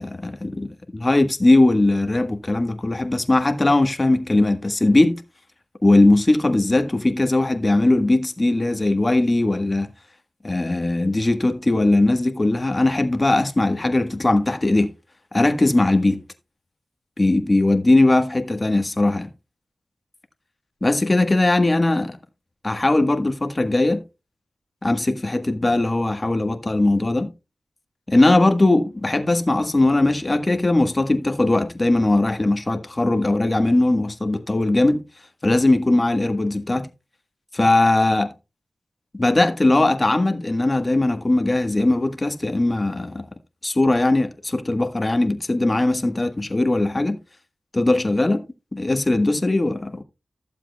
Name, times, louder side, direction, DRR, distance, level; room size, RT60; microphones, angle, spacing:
voice 1, 0.0-5.2 5.8-9.9 10.4-14.9 15.3-16.2 17.2-19.3 20.8-22.2 22.6-24.0 24.8-27.3 28.1-35.0 35.4-36.9 37.5-38.3 39.1-43.2 43.6-47.2 47.7-48.4 48.7-50.0, left 2 dB, 30° left, 1.4 m, -19 dB
14.5 x 7.4 x 2.3 m
cardioid pair, 55°, 0 cm